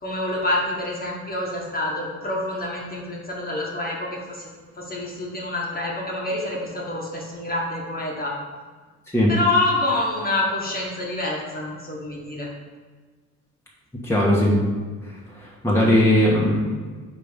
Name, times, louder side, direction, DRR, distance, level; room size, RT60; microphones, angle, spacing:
voice 1, 0.0-4.5 4.8-8.3 9.3-12.5, left 2 dB, 30° left, -3 dB, 1.5 m, -27 dB
voice 2, 14.0-14.6 15.6-16.6, left 1 dB, 10° left, -5 dB, 1.3 m, -18 dB
5.4 x 3.8 x 5.1 m, 1.5 s
cardioid pair, 90°, 30 cm